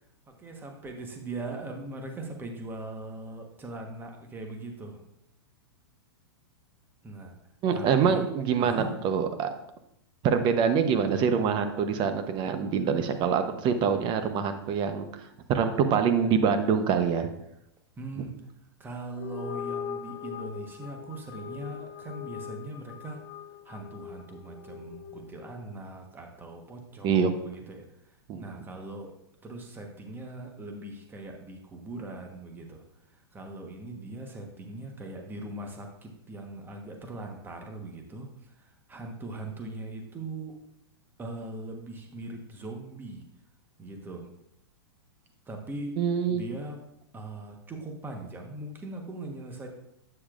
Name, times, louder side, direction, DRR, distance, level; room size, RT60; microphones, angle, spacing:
voice 1, 0.3-5.0 7.0-7.3 7.7-8.3 8.6-8.9 18.0-18.3 18.8-23.2 23.6-29.2 29.4-32.8 33.3-40.6 41.2-43.2 43.8-44.3 45.5-46.0 46.3-46.8 47.1-49.7, right 2 dB, 15° right, 3 dB, 1.2 m, -40 dB
voice 2, 7.6-9.5 10.2-15.0 15.5-17.3 27.0-27.3 28.3-28.4 46.0-46.4, right 6 dB, 35° right, 8 dB, 0.9 m, -25 dB
sound 1, 19.1-25.7, left 7 dB, 50° left, 0.8 m, -40 dB
8.7 x 7.1 x 2.5 m, 0.77 s
hypercardioid pair, 120°, 14 cm